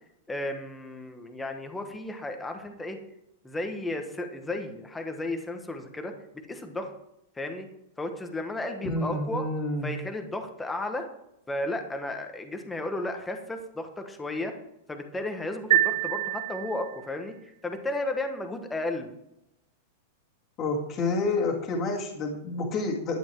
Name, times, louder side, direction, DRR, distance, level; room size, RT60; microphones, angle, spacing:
voice 1, 0.3-3.0 3.4-6.9 7.3-7.7 8.0-9.4 9.8-11.1 11.5-14.5 14.9-19.1, left 2 dB, 5° left, 5 dB, 1.2 m, -34 dB
voice 2, 8.8-9.9 20.6-23.2, left 2 dB, 20° left, -1 dB, 2.1 m, -29 dB
sound 1, 15.7-17.2, right 14 dB, 65° right, 1.1 m, -26 dB
12.0 x 9.8 x 4.6 m, 0.82 s
supercardioid pair, 170°, 0 cm